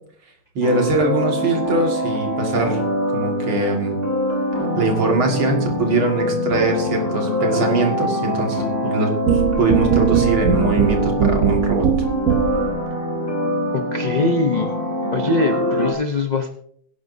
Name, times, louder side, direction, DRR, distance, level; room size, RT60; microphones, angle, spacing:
voice 1, 0.5-2.8 3.1-4.0 4.8-11.9, right 2 dB, 80° right, 1 dB, 3.0 m, -22 dB
sound 1, 0.6-15.9, left 1 dB, 35° right, 3.0 m, -24 dB
sound 2, 9.3-12.8, right 8 dB, 55° right, 1.1 m, -19 dB
voice 2, 13.7-14.7 15.1-16.6, left 2 dB, 85° left, 5 dB, 0.3 m, -22 dB
21.5 x 10.5 x 2.7 m, 0.64 s
omnidirectional pair, 2.2 m